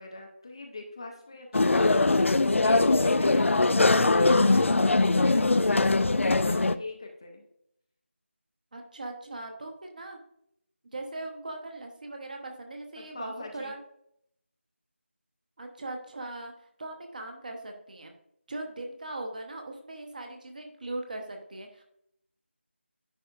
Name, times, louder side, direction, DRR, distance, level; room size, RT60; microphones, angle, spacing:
voice 1, 0.0-7.4 13.1-13.7, left 2 dB, 25° left, 2 dB, 0.5 m, -42 dB
sound 1, 1.5-6.8, left 3 dB, 75° left, 0.4 m, -22 dB
voice 2, 8.7-10.2 10.8-13.8 15.6-16.5 16.8-18.1 18.5-21.8, right 2 dB, 40° right, 3 dB, 1.0 m, -39 dB
10.0 x 4.2 x 2.4 m, 0.74 s
figure-of-eight pair, 170°, 7 cm